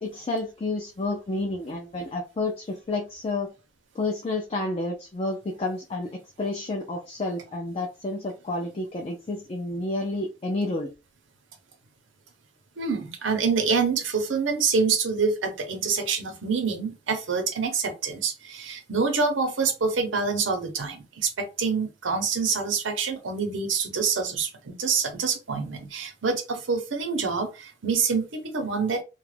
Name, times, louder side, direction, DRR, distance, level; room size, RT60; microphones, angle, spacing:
voice 1, 0.0-3.5 3.9-10.9, left 2 dB, 30° left, 0.4 m, -30 dB
voice 2, 12.8-29.0, right 5 dB, 90° right, 0.7 m, -26 dB
2.3 x 2.1 x 3.2 m
head